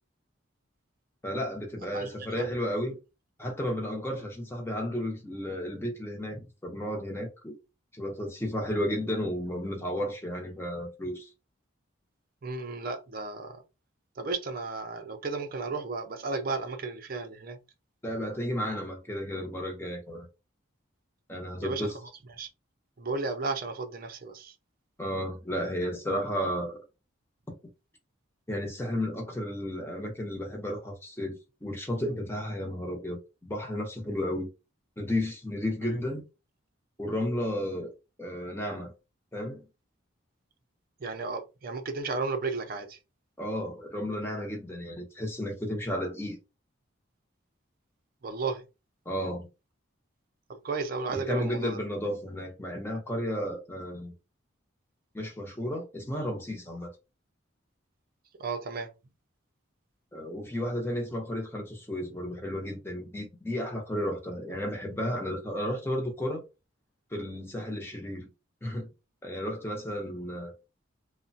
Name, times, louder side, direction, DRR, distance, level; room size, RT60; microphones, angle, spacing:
voice 1, 1.2-3.0 3.4-7.5 7.9-11.3 18.0-20.3 21.3-21.9 25.0-26.8 27.5-27.6 28.5-34.5 35.0-36.2 37.0-37.9 38.2-38.9 39.3-39.6 43.4-46.4 49.1-49.5 51.1-54.1 55.1-56.9 60.1-66.4 67.1-68.3 68.6-68.9 69.2-70.5, equal, 10° left, 0.7 m, -33 dB
voice 2, 1.9-2.5 12.4-13.6 14.2-17.6 21.6-21.9 22.4-22.5 23.0-24.5 35.8-35.9 41.0-43.0 48.2-48.6 50.5-51.8 58.4-58.9, right 3 dB, 45° right, 0.5 m, -34 dB
2.9 x 2.1 x 2.7 m
head